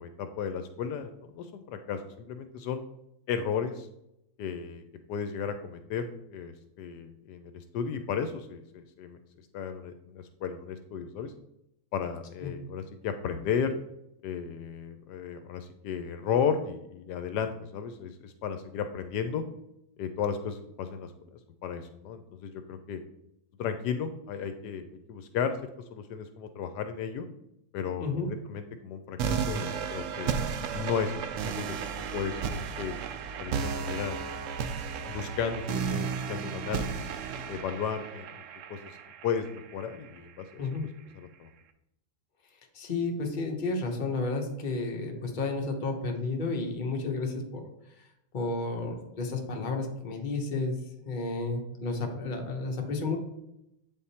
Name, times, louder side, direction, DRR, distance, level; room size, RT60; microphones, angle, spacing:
voice 1, 0.0-2.8 3.3-3.9 4.4-4.8 5.1-9.2 9.5-11.3 11.9-13.7 14.2-19.4 20.0-21.1 21.6-23.0 23.6-25.6 25.9-27.3 27.7-30.3 30.7-31.1 31.5-31.7 32.1-33.0 33.4-34.1 35.1-37.1 37.5-38.3 38.7-39.0 39.2-40.6 41.2-41.5, left 7 dB, 80° left, 8 dB, 1.1 m, -34 dB
sound 1, 29.2-40.2, right 6 dB, 70° right, 0.7 m, -34 dB
voice 2, 42.7-47.6 47.9-48.1 48.3-50.7 51.0-53.2, left 3 dB, 35° left, 2 dB, 1.0 m, -32 dB
8.2 x 3.6 x 4.2 m, 0.82 s
omnidirectional pair, 1.8 m